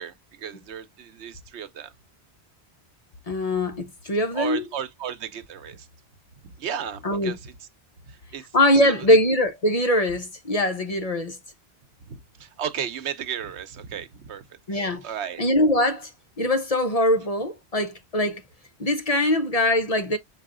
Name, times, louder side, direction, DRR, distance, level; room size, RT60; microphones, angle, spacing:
voice 1, 0.0-1.9 4.3-5.9 6.4-7.5 8.1-8.4 8.8-8.9 12.0-14.4 15.0-15.4, right 8 dB, 85° right, 1.0 m, -34 dB
voice 2, 3.3-4.6 7.0-7.4 8.5-11.4 14.7-15.0 15.4-16.1 16.4-18.4 18.8-20.2, left 1 dB, 40° left, 0.7 m, -22 dB
5.5 x 2.4 x 3.6 m
omnidirectional pair, 1.1 m